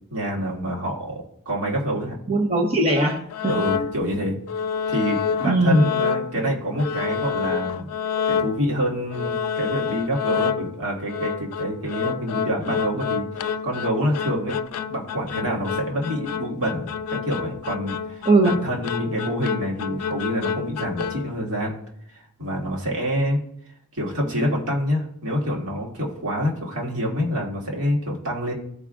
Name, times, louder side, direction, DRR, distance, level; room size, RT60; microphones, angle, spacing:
voice 1, 0.1-2.2 3.5-4.4 4.9-7.9 8.3-14.6 14.9-21.8 22.4-23.4 23.9-28.5, equal, 70° right, -3 dB, 1.9 m, -27 dB
voice 2, 2.3-3.8 5.4-5.8 18.2-18.5, right 1 dB, 30° right, -1 dB, 0.8 m, -19 dB
sound 1, 2.9-4.1 4.5-6.5 6.8-8.8 9.1-21.3, left 7 dB, 85° left, 0.4 m, -28 dB
14.0 x 4.8 x 2.5 m, 0.71 s
head